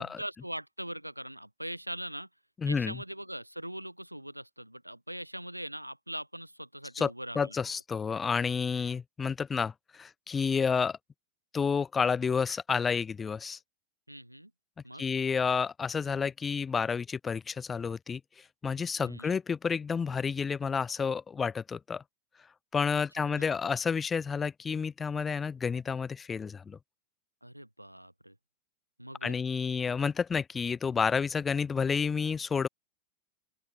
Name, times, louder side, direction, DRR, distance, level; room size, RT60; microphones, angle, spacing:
voice 1, 0.0-2.3 2.6-7.6 14.1-14.5 14.8-15.0 19.0-19.4 22.9-23.4 27.4-28.4 29.0-29.4, right 1 dB, 90° right, 3.9 m, -41 dB
voice 2, 2.6-2.9 7.0-7.1 7.4-11.0 11.5-13.6 15.0-18.2 18.6-22.0 22.7-26.8 29.2-32.7, left 6 dB, 15° left, 0.4 m, -30 dB
open air
figure-of-eight pair, 90°, 0 cm